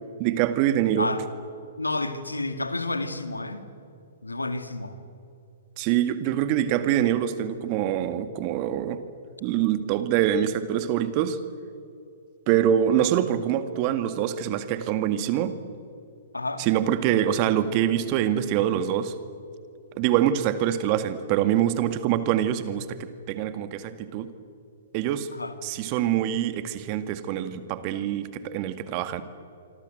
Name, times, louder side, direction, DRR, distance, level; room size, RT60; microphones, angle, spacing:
voice 1, 0.2-1.1 5.8-9.0 9.4-11.4 12.5-15.6 16.6-19.1 20.0-24.3 24.9-25.3 25.6-29.2, right 10 dB, 40° right, 11 dB, 2.0 m, -25 dB
voice 2, 1.8-3.6 4.2-5.0 16.3-16.7 25.3-25.5, left 2 dB, 90° left, 9 dB, 2.4 m, -30 dB
26.0 x 25.5 x 8.0 m, 2.6 s
figure-of-eight pair, 120°, 0 cm